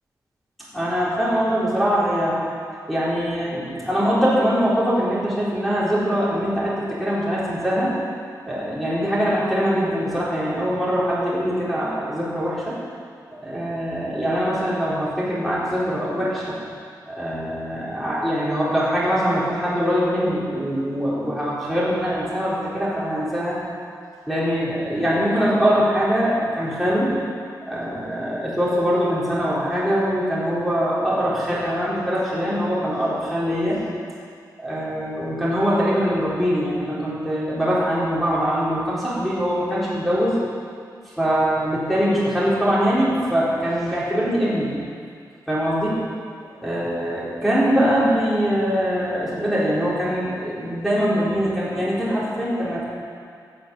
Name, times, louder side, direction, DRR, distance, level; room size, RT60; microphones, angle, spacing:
voice 1, 0.7-2.4 2.9-7.9 8.5-12.7 13.4-16.6 17.1-23.6 24.3-27.1 27.7-33.8 34.6-40.4 41.2-44.7 45.5-46.0 46.6-52.9, equal, ahead, -9 dB, 4.2 m, -22 dB
16.5 x 7.7 x 7.3 m, 2.2 s
wide cardioid pair, 170°, 7 cm